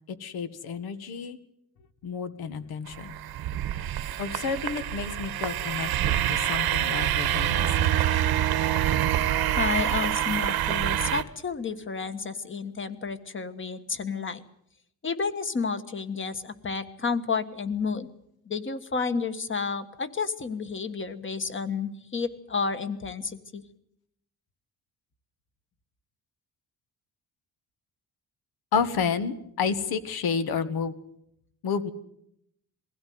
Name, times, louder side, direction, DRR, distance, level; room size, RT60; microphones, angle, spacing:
voice 1, 0.1-1.4 2.0-3.1 4.2-7.9 28.7-30.9 31.6-31.9, left 6 dB, 85° left, 12 dB, 1.6 m, -30 dB
sound 1, 2.9-11.2, right 12 dB, 85° right, 1.2 m, -26 dB
voice 2, 9.6-14.4 15.0-18.1 18.4-23.6, left 5 dB, 35° left, 10 dB, 1.5 m, -31 dB
22.0 x 16.0 x 9.4 m, 0.76 s
cardioid pair, 125°, 36 cm